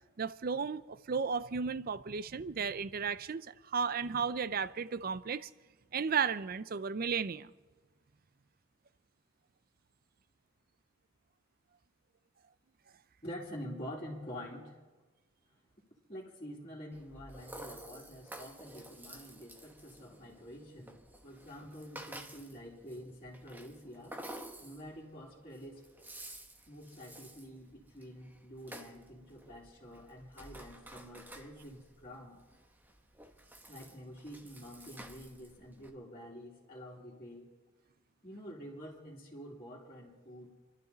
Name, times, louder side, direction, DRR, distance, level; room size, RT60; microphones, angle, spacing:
voice 1, 0.2-5.5 5.9-7.5, right 6 dB, 45° right, 0.5 m, -34 dB
voice 2, 13.2-14.8 16.1-24.2 24.6-25.8 26.7-32.4 33.7-37.5 38.2-40.5, equal, 30° left, 2.7 m, -47 dB
Rattle (instrument), 16.9-35.9, right 1 dB, 10° right, 1.1 m, -52 dB
29.0 x 12.0 x 4.0 m
head